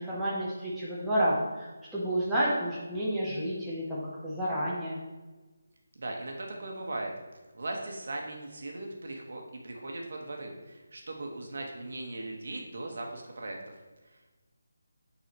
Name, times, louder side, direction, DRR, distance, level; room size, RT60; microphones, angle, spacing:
voice 1, 0.0-5.0, right 1 dB, ahead, -11 dB, 0.7 m, -30 dB
voice 2, 6.0-7.1 7.5-13.7, right 2 dB, 55° right, 1 dB, 1.2 m, -38 dB
9.1 x 4.1 x 2.9 m, 1.2 s
figure-of-eight pair, 175°, 0 cm